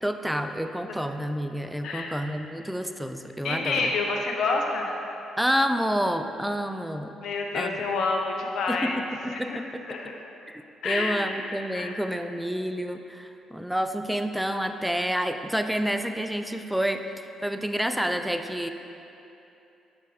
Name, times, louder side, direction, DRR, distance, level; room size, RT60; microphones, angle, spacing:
voice 1, 0.0-3.9 5.4-7.1 7.5-7.8 8.7-10.1 10.5-18.7, equal, 5° right, 7 dB, 0.4 m, -29 dB
voice 2, 3.4-5.0 7.2-9.0 9.3-9.6 9.9-10.2 10.8-11.4 11.7-12.0, left 3 dB, 65° left, 1 dB, 0.6 m, -28 dB
6.6 x 5.1 x 3.1 m, 2.8 s
hypercardioid pair, 45°, 0 cm